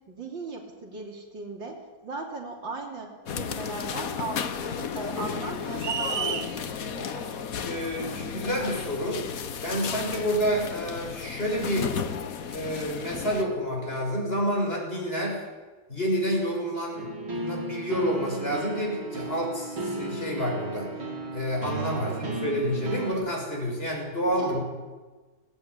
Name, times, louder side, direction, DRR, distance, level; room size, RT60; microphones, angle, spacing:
voice 1, 0.1-7.6 21.9-22.2 24.3-24.6, right 3 dB, 65° right, 1 dB, 3.8 m, -38 dB
sound 1, 3.3-13.4, left 7 dB, 50° left, 1.3 m, -34 dB
sound 2, 5.8-6.5, right 7 dB, 45° right, 0.8 m, -30 dB
voice 2, 7.6-9.2 9.6-11.9 12.5-15.4 15.9-20.9 21.3-24.6, equal, 25° left, 0 dB, 6.6 m, -29 dB
sound 3, 17.0-23.1, right 2 dB, 85° right, 4.0 m, -34 dB
20.0 x 17.5 x 9.8 m, 1.3 s
omnidirectional pair, 2.2 m